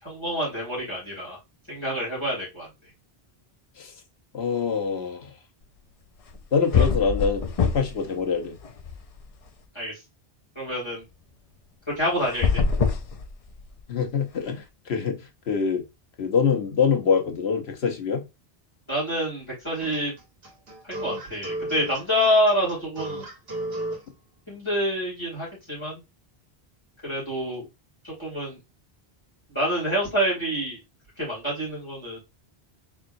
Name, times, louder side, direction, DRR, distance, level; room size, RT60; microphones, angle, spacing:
voice 1, 0.0-1.4 1.7-2.7 6.7-6.9 9.7-10.0 10.6-11.0 12.0-12.6 18.9-20.1 20.8-23.2 24.5-26.0 27.0-27.7 28.0-28.6 29.5-30.8 31.2-32.2, equal, 25° left, 2.5 m, -27 dB
voice 2, 4.3-5.3 6.5-8.6 13.9-15.8 16.2-18.2, left 6 dB, 85° left, 1.1 m, -25 dB
sound 1, 6.3-6.4 6.7-8.1 8.4-9.5 12.2-13.8, left 5 dB, 45° left, 0.5 m, -24 dB
sound 2, 19.8-24.0, right 1 dB, 75° right, 1.4 m, -33 dB
3.7 x 3.5 x 2.5 m
omnidirectional pair, 1.0 m